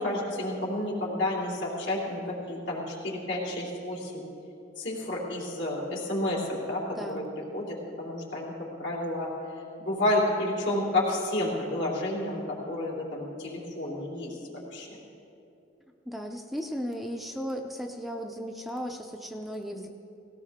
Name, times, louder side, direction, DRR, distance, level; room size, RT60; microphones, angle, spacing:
voice 1, 0.0-4.3 4.8-7.2 7.5-8.5 8.8-14.4 14.7-14.9, left 1 dB, 75° left, -4 dB, 3.4 m, -30 dB
voice 2, 7.0-7.3 16.1-19.9, equal, ahead, 2 dB, 0.6 m, -36 dB
18.0 x 17.5 x 3.6 m, 2.8 s
head